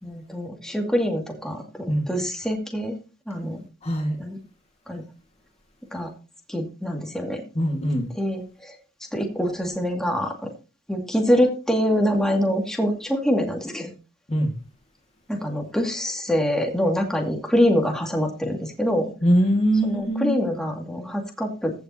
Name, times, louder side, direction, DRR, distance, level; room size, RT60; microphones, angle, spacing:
voice 1, 0.0-3.0 3.3-3.6 4.2-4.4 4.9-5.0 5.9-6.1 6.5-7.4 8.1-8.8 9.1-10.5 10.9-14.0 15.3-19.1 19.8-21.7, equal, 5° left, 1 dB, 2.2 m, -25 dB
voice 2, 3.8-4.2 7.5-8.1 14.3-14.5 19.2-20.4, equal, 30° left, 3 dB, 1.7 m, -22 dB
16.0 x 7.0 x 2.8 m, 0.34 s
head